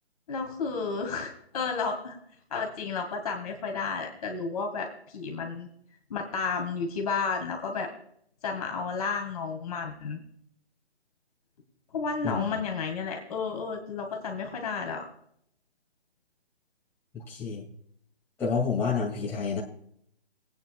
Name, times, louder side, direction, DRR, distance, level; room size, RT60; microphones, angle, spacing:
voice 1, 0.3-2.2 2.5-5.7 6.1-7.9 8.4-10.2 11.9-15.1, left 5 dB, 35° left, 2 dB, 2.0 m, -32 dB
voice 2, 12.2-12.6 17.1-17.6 18.4-19.6, left 5 dB, 5° left, -5 dB, 2.3 m, -29 dB
20.5 x 9.2 x 2.4 m, 0.68 s
hypercardioid pair, 160°, 32 cm